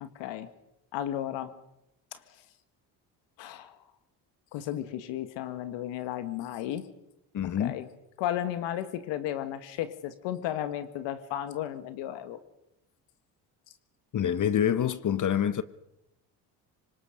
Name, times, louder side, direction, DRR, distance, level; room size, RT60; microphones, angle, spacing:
voice 1, 0.0-0.5 0.9-1.5 2.1-2.2 3.4-3.8 4.5-6.9 7.6-7.9 8.2-12.4, left 11 dB, 75° left, 1.8 m, -34 dB
voice 2, 7.3-7.8 14.1-15.6, left 9 dB, 45° left, 1.1 m, -26 dB
25.0 x 20.5 x 5.1 m
supercardioid pair, 65°, 44 cm